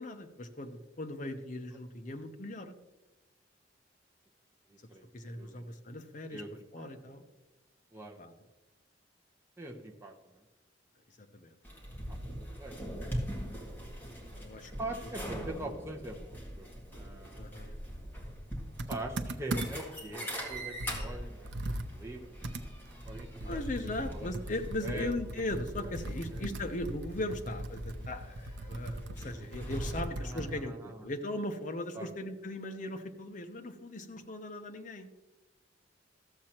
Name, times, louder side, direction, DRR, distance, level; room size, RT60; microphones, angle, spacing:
voice 1, 0.0-2.8 5.1-6.4 6.7-7.2 8.2-8.3 11.2-11.6 14.3-14.7 17.4-17.7 23.4-35.1, left 1 dB, 40° left, 6 dB, 0.8 m, -38 dB
voice 2, 4.7-5.7 6.3-6.9 7.9-8.2 9.6-10.4 12.1-12.8 14.8-17.5 18.9-22.3 23.0-24.3 24.8-25.5 25.8-26.0 26.3-26.5 30.2-31.1 31.9-32.1, right 2 dB, 15° right, 1 dB, 0.9 m, -43 dB
sound 1, 11.6-30.0, equal, 10° left, 1.9 m, -42 dB
Computer keyboard, 18.8-20.0 20.4-20.5 20.8-30.7, right 1 dB, 65° right, 0.6 m, -39 dB
13.5 x 7.5 x 2.9 m, 1.1 s
head